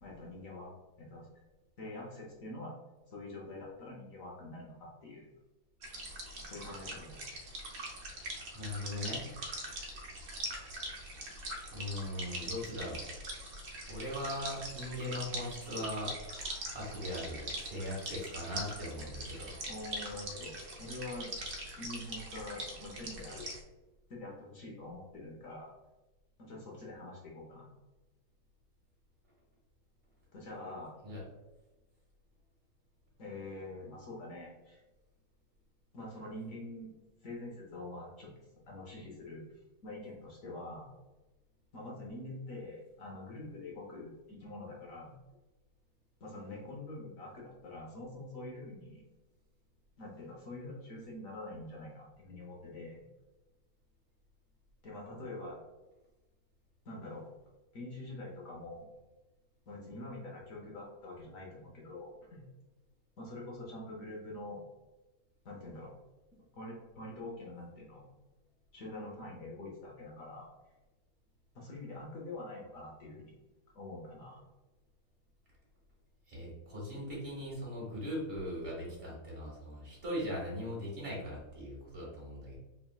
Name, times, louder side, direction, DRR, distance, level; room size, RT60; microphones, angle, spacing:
voice 1, 0.0-0.7 1.0-1.3 1.8-2.7 3.1-5.3 6.4-7.3 19.7-21.3 21.8-23.4 24.1-25.7 26.4-27.7 30.3-31.0 33.2-34.8 35.9-36.9 37.2-39.4 39.8-40.9 41.7-45.1 46.2-49.0 50.0-53.0 54.8-55.6 56.8-57.3 57.7-58.9 59.7-62.4 63.2-64.6 65.4-65.9 66.5-68.0 68.7-70.5 71.5-73.3 73.7-74.4, left 2 dB, 55° left, -3 dB, 0.9 m, -45 dB
sound 1, 5.8-23.6, right 1 dB, 75° right, 0.6 m, -42 dB
voice 2, 8.5-9.3 11.7-13.2 13.9-16.1 16.7-19.6 31.0-31.2 76.3-82.6, left 1 dB, 35° right, -4 dB, 1.2 m, -39 dB
4.2 x 3.5 x 2.3 m, 1.1 s
omnidirectional pair, 2.2 m